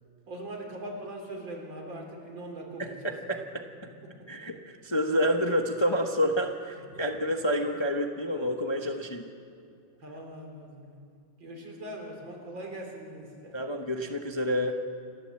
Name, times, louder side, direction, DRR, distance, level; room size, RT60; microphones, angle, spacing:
voice 1, 0.3-3.1 4.0-4.3 6.9-7.1 8.9-9.0 10.0-11.1 11.4-13.6, right 1 dB, 75° right, 1 dB, 4.3 m, -41 dB
voice 2, 2.8-3.6 4.3-9.2 13.5-14.7, equal, 20° left, 3 dB, 0.7 m, -28 dB
28.0 x 12.5 x 7.7 m, 2.4 s
omnidirectional pair, 2.1 m